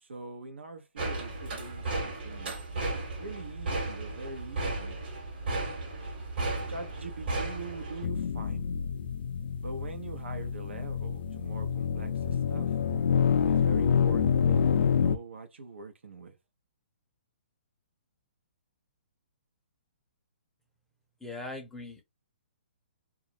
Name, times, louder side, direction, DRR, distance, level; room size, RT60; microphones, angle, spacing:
voice 1, 0.0-2.9 3.2-5.0 6.7-8.6 9.6-12.7 13.5-16.4, right 3 dB, 85° right, 0.7 m, -43 dB
sound 1, 1.0-8.1, right 2 dB, 55° right, 1.2 m, -34 dB
sound 2, 8.0-15.2, left 7 dB, 70° left, 0.3 m, -27 dB
voice 2, 21.2-22.0, left 2 dB, 5° left, 0.5 m, -40 dB
2.4 x 2.0 x 2.6 m
hypercardioid pair, 145°, 6 cm